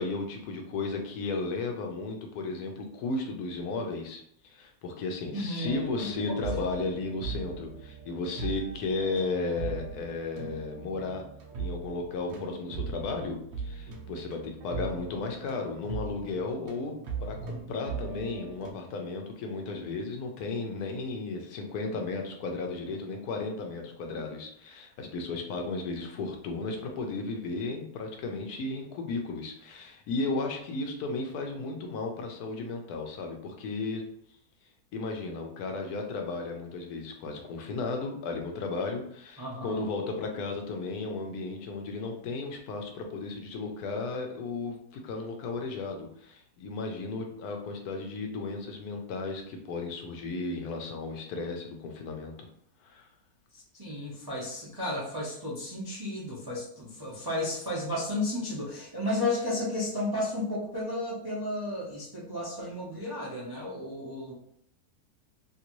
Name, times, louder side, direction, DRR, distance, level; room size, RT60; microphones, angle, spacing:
voice 1, 0.0-11.2 11.6-16.9 17.2-34.1 34.9-44.8 45.0-52.3 52.8-53.1, left 3 dB, 75° left, 3 dB, 1.1 m, -34 dB
voice 2, 5.3-6.1 6.5-6.8 39.4-39.8 53.5-64.3, left 1 dB, 35° right, -7 dB, 0.3 m, -33 dB
sound 1, 5.6-18.7, right 5 dB, 60° right, 0.7 m, -39 dB
2.9 x 2.5 x 2.9 m, 0.67 s
omnidirectional pair, 1.6 m